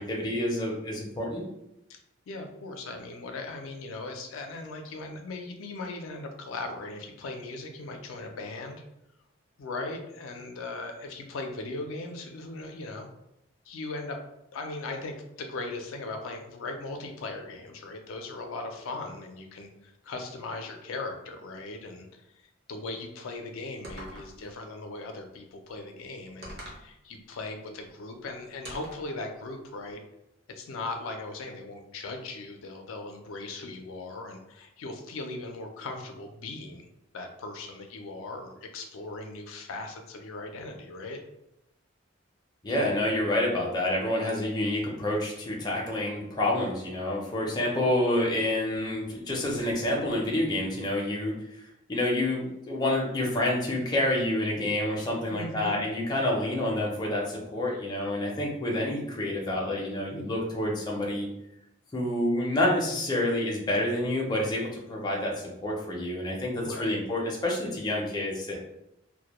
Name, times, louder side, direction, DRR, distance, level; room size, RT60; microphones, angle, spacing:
voice 1, 0.0-1.4 42.6-61.3 61.9-68.6, left 1 dB, 20° left, -2 dB, 0.4 m, -28 dB
voice 2, 2.3-8.8 9.6-13.1 13.7-14.2 14.5-30.0 30.5-36.9 37.1-41.2 55.3-55.8 66.6-67.0, left 2 dB, 80° left, 4 dB, 0.4 m, -38 dB
sound 1, 23.8-24.5 26.4-26.9 28.6-29.1, right 1 dB, 50° right, 0.6 m, -43 dB
2.1 x 2.1 x 2.9 m, 0.84 s
head